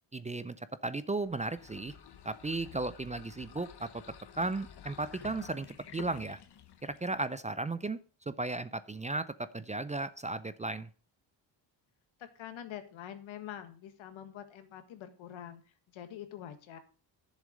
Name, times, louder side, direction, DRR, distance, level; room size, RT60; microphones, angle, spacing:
voice 1, 0.1-1.9 2.2-4.0 4.4-6.4 6.8-8.0 8.3-10.9, right 2 dB, 15° right, 15 dB, 0.4 m, -35 dB
sound 1, 1.2-7.2, left 9 dB, 60° left, 1.4 m, -51 dB
voice 2, 12.2-15.6 15.9-16.8, left 10 dB, 85° left, 9 dB, 1.7 m, -45 dB
10.5 x 7.3 x 5.2 m, 0.39 s
cardioid pair, 95°, 46 cm